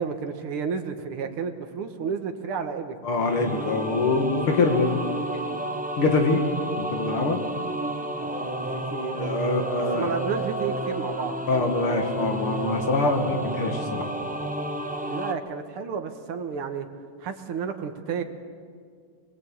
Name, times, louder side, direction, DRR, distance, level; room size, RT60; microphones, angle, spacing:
voice 1, 0.0-3.0 8.2-9.7 9.9-11.4 15.1-16.9 17.2-18.2, right 6 dB, 80° right, 6 dB, 2.3 m, -32 dB
voice 2, 3.0-5.0 6.0-6.4 6.7-7.4 9.1-10.2 11.5-14.1, left 3 dB, 75° left, 4 dB, 3.1 m, -24 dB
sound 1, 3.1-15.3, right 1 dB, 5° right, 0.6 m, -31 dB
23.5 x 20.5 x 8.8 m, 2.1 s
omnidirectional pair, 2.4 m